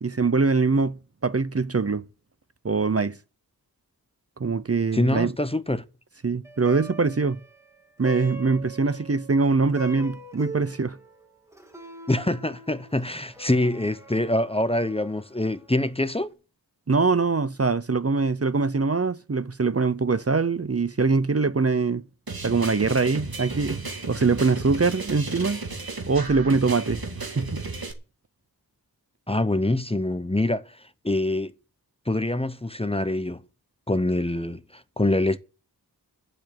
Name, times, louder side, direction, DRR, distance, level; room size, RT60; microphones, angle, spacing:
voice 1, 0.0-2.0 2.6-3.2 4.4-5.3 6.2-7.4 8.0-11.0 16.9-22.0 22.4-23.8 24.1-25.6 26.1-27.0 27.3-27.6, right 4 dB, 40° right, 0.8 m, -23 dB
voice 2, 4.9-5.8 12.1-16.3 29.3-30.8 31.0-31.5 32.1-33.4 33.9-35.4, left 1 dB, 15° left, 0.8 m, -25 dB
Plucked string instrument, 6.4-15.9, right 3 dB, 10° right, 3.2 m, -43 dB
sound 1, 22.3-27.9, right 3 dB, 65° right, 2.5 m, -34 dB
11.5 x 7.8 x 8.9 m
wide cardioid pair, 65°, 38 cm